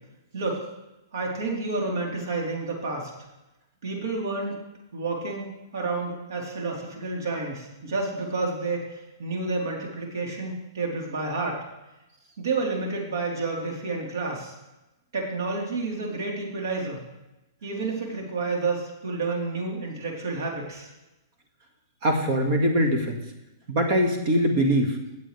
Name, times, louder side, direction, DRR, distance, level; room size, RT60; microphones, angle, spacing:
voice 1, 0.3-0.7 1.1-3.1 3.8-4.6 4.9-5.5 5.7-11.6 12.4-14.5 15.1-17.0 17.6-20.9, right 3 dB, 75° right, -1 dB, 3.8 m, -30 dB
voice 2, 22.0-23.2 23.7-25.0, equal, 40° right, 5 dB, 2.0 m, -22 dB
17.0 x 8.1 x 3.4 m, 0.98 s
hypercardioid pair, 165°, 2 cm